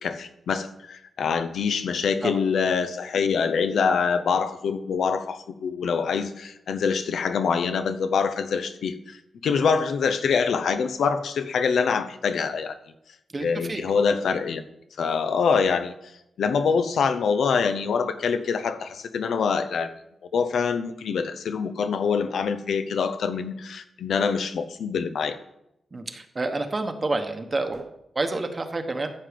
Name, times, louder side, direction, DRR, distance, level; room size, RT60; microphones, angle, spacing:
voice 1, 0.0-12.8 13.4-14.6 15.0-15.9 16.4-19.9 20.3-25.4, left 5 dB, 80° left, 10 dB, 0.8 m, -25 dB
voice 2, 13.3-13.8 25.9-29.1, right 2 dB, 25° right, 6 dB, 1.0 m, -29 dB
14.5 x 7.6 x 5.1 m, 0.81 s
wide cardioid pair, 170°, 0 cm